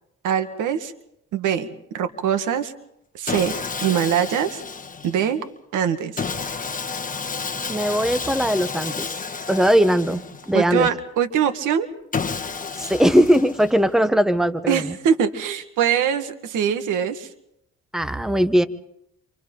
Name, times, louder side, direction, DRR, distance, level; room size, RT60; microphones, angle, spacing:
voice 1, 0.2-0.9 1.3-1.7 1.9-2.7 3.1-3.5 3.8-4.6 5.0-5.4 5.7-6.2 10.5-11.9 14.7-17.3, right 8 dB, 85° right, 8 dB, 1.7 m, -22 dB
Sawing, 3.3-5.3 6.2-10.7 12.1-13.9, left 5 dB, 25° left, 1.7 m, -31 dB
voice 2, 7.7-9.1 9.5-10.9 12.8-14.9 17.9-18.7, equal, ahead, 11 dB, 1.1 m, -19 dB
28.0 x 26.0 x 3.9 m, 0.79 s
cardioid pair, 90°, 30 cm